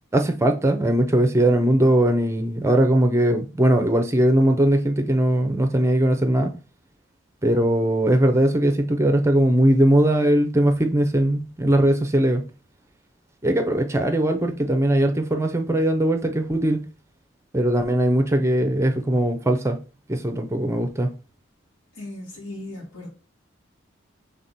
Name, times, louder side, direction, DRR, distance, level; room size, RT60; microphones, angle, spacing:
voice 1, 0.1-6.5 7.4-12.4 13.4-16.8 17.5-19.8 20.1-21.1, right 1 dB, 15° right, 0.5 m, -20 dB
voice 2, 21.9-23.1, left 1 dB, 80° left, 2.2 m, -37 dB
5.8 x 3.5 x 2.6 m
head